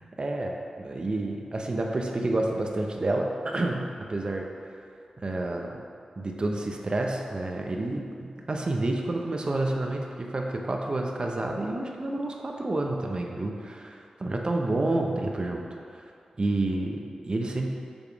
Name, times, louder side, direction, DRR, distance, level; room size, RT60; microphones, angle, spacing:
voice 1, 0.0-4.5 5.2-5.8 6.2-15.6 15.9-16.1 16.4-17.7, right 2 dB, 45° right, 1 dB, 0.6 m, -29 dB
7.1 x 3.5 x 4.6 m, 2.4 s
wide cardioid pair, 70°, 2 cm